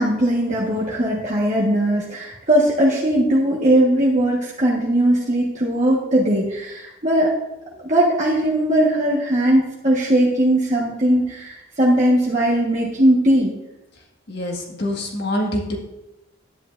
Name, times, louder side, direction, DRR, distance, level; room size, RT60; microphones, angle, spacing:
voice 1, 0.0-7.3 7.8-13.5, right 1 dB, 35° right, -5 dB, 1.5 m, -19 dB
voice 2, 14.3-15.8, left 1 dB, 55° left, 0 dB, 1.8 m, -25 dB
11.5 x 10.5 x 2.6 m, 0.92 s
head